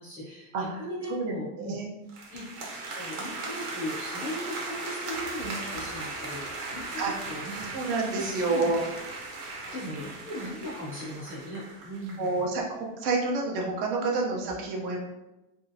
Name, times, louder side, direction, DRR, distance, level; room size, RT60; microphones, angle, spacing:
voice 1, 0.0-1.8 2.3-2.4 2.9-6.5 6.7-7.8 8.1-8.9 9.4-12.4, equal, 5° left, -15 dB, 0.3 m, -38 dB
voice 2, 1.1-1.9 7.0-7.1 7.7-8.8 12.2-15.0, right 3 dB, 40° right, 0 dB, 0.6 m, -29 dB
sound 1, 2.1-12.4, right 3 dB, 85° right, 1.0 m, -38 dB
2.9 x 2.6 x 2.6 m, 0.98 s
supercardioid pair, 170°, 45 cm